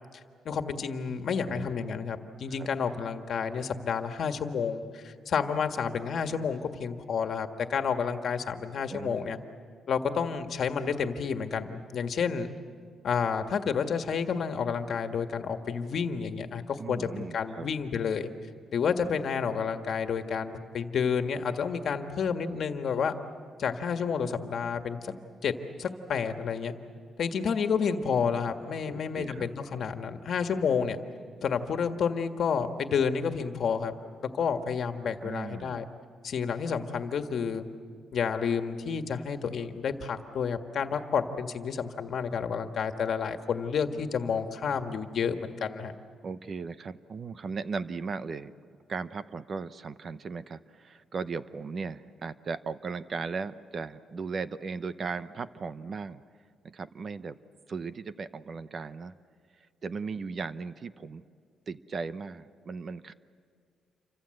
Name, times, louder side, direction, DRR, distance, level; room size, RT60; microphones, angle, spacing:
voice 1, 0.5-9.4 9.9-12.5 13.0-18.3 18.7-23.1 23.6-25.1 25.4-25.5 25.8-26.7 27.2-31.0 31.4-33.9 34.2-35.9 36.2-37.6 38.1-45.9, left 6 dB, 55° left, 7 dB, 1.7 m, -30 dB
voice 2, 1.5-2.0 2.5-2.7 8.9-9.4 16.8-17.7 28.8-29.5 35.2-35.9 46.2-48.5 48.9-56.2 56.6-57.4 57.7-59.1 59.8-61.2 61.7-63.1, right 4 dB, 40° right, 13 dB, 0.8 m, -37 dB
28.5 x 25.0 x 7.9 m, 2.2 s
cardioid pair, 125°, 0 cm